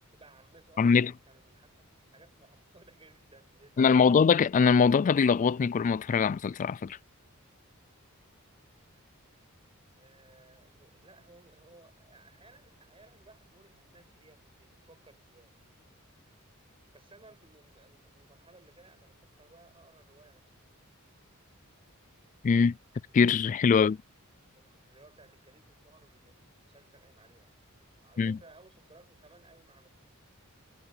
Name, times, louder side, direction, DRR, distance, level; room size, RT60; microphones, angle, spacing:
voice 1, 0.1-4.2 10.0-15.6 16.9-20.6 23.7-24.3 24.5-27.5 28.0-29.9, right 2 dB, 25° right, 6.8 m, -59 dB
voice 2, 0.8-1.1 3.8-7.0 22.4-22.8 23.1-24.0 28.2-28.4, left 5 dB, 35° left, 0.3 m, -22 dB
head